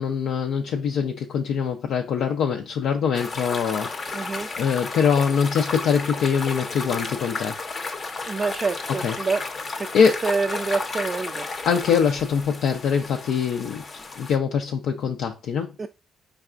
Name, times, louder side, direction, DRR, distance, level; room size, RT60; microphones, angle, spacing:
voice 1, 0.0-3.9 4.6-7.6 9.0-9.1 9.9-10.2 11.7-13.8 14.2-15.7, left 7 dB, 80° left, 0.4 m, -23 dB
sound 1, 3.1-14.4, left 3 dB, 40° left, 0.6 m, -33 dB
voice 2, 4.1-4.5 8.3-9.4 9.8-11.5 15.8-15.9, right 4 dB, 35° right, 0.3 m, -27 dB
4.7 x 3.4 x 2.4 m
cardioid pair, 90°, 0 cm